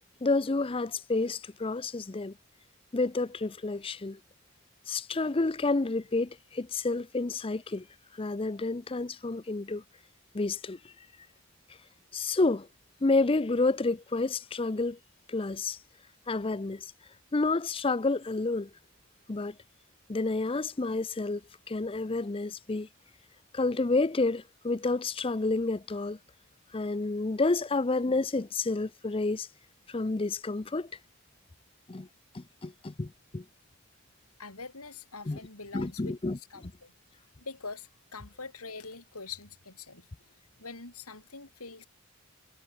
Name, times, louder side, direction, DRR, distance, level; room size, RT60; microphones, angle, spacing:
voice 1, 0.2-2.3 2.9-4.2 4.9-7.9 8.2-9.8 10.3-10.8 12.1-12.7 13.0-15.0 15.3-15.8 16.3-16.9 17.3-18.7 19.3-19.5 20.1-21.4 21.7-22.9 23.5-26.2 26.7-29.5 29.9-30.9 31.9-32.1 32.3-33.4 35.3-35.4 35.7-36.7, left 3 dB, 25° left, 0.5 m, -29 dB
voice 2, 34.4-36.9 37.4-40.1 40.6-41.9, left 4 dB, 85° left, 5.5 m, -44 dB
head